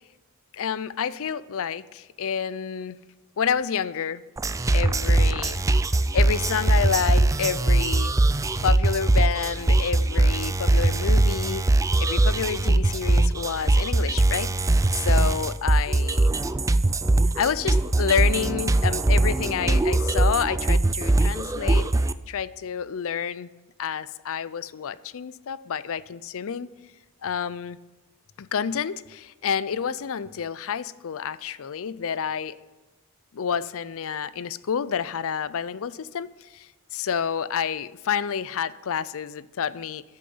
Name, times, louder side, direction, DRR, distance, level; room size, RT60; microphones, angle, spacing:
voice 1, 0.5-3.0 3.4-4.2 4.7-5.6 6.1-8.1 8.6-11.6 12.0-14.5 14.9-16.3 17.4-21.9 22.3-23.5 23.8-26.7 27.2-27.8 28.4-32.6 33.3-36.3 36.5-36.7 36.9-40.0, left 7 dB, 65° left, 17 dB, 0.5 m, -29 dB
sound 1, 4.4-22.1, right 2 dB, 15° right, 0.3 m, -21 dB
13.0 x 6.5 x 7.9 m, 1.1 s
head